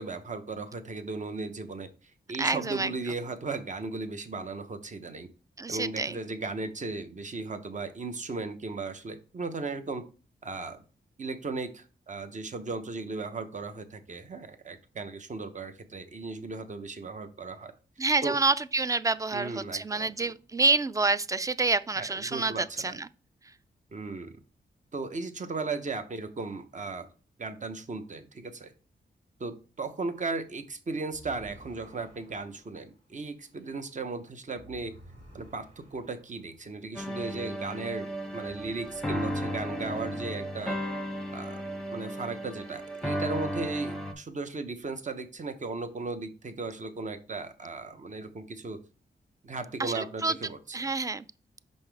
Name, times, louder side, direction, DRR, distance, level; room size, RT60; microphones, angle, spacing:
voice 1, 0.0-1.9 2.3-5.3 5.7-10.0 10.4-10.8 11.2-17.7 18.2-18.4 19.3-20.3 22.0-23.0 23.9-24.4 24.9-27.1 27.4-28.7 29.4-34.9 35.3-40.8 41.3-41.6 41.9-48.8 49.4-50.9, right 3 dB, 40° right, 0.8 m, -36 dB
voice 2, 2.4-2.9 5.6-6.2 18.0-23.1 49.8-50.3 50.7-51.2, right 3 dB, 20° right, 0.3 m, -28 dB
sound 1, 31.0-38.0 38.3-41.0, equal, 70° right, 2.3 m, -55 dB
sound 2, 37.0-44.1, equal, 5° left, 0.9 m, -34 dB
5.5 x 5.2 x 3.4 m
cardioid pair, 85°, 19 cm